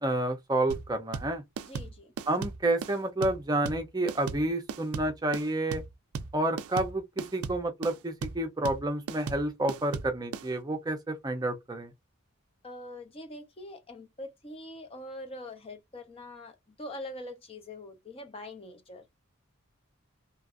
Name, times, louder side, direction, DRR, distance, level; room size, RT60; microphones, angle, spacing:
voice 1, 0.0-1.4 2.3-5.8 6.3-11.9, right 1 dB, 20° right, 0.5 m, -29 dB
sound 1, 0.7-10.5, right 5 dB, 80° right, 0.4 m, -37 dB
voice 2, 1.6-2.1 12.6-19.0, left 1 dB, 25° left, 0.5 m, -43 dB
2.8 x 2.5 x 2.4 m
head